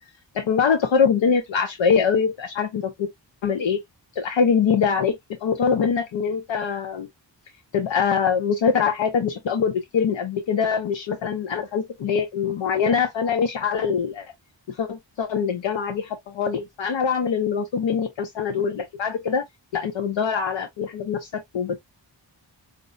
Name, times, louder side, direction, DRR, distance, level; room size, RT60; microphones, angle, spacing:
voice 1, 0.3-3.1 3.4-3.8 4.2-7.1 7.7-14.3 14.7-19.4 19.7-21.8, left 6 dB, 85° left, 0.7 m, -23 dB
5.1 x 2.0 x 2.4 m
wide cardioid pair, 105°, 44 cm